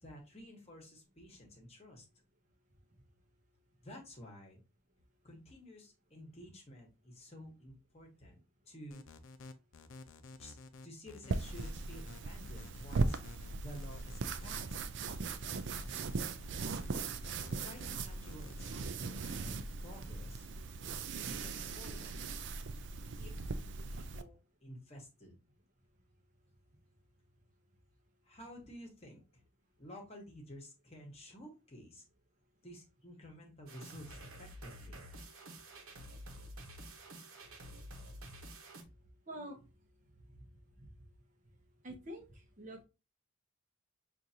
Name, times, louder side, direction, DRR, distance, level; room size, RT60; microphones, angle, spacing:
voice 1, 0.0-2.0 3.8-4.6 5.2-8.4 8.7-9.0 10.4-13.2 13.6-14.8 17.5-20.5 21.2-22.4 23.1-23.3 23.9-25.4 28.2-29.4 29.8-32.0 32.6-35.0, equal, 30° left, 1 dB, 1.1 m, -52 dB
sound 1, 8.9-19.5, left 3 dB, 65° left, 0.5 m, -53 dB
sound 2, 11.3-24.2, right 4 dB, 55° right, 0.4 m, -39 dB
sound 3, 33.7-38.8, right 1 dB, 80° right, 1.0 m, -50 dB
voice 2, 39.3-39.6 40.8-40.9 41.8-42.8, equal, 35° right, 2 dB, 0.7 m, -46 dB
6.1 x 2.6 x 2.7 m, 0.28 s
head